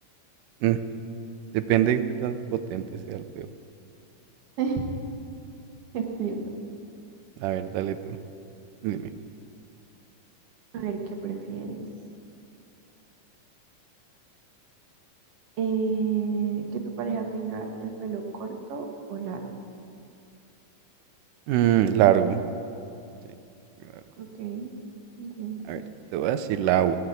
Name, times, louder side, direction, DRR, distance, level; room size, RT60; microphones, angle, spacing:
voice 1, 1.5-3.5 7.4-8.0 8.8-9.0 21.5-22.4 25.7-25.8 26.1-27.0, right 11 dB, 80° right, 10 dB, 2.2 m, -23 dB
voice 2, 5.9-6.4 10.7-11.9 15.6-19.5 24.2-24.8 25.2-25.8, right 6 dB, 55° right, 3 dB, 2.0 m, -31 dB
16.5 x 7.2 x 9.5 m, 2.6 s
omnidirectional pair, 3.8 m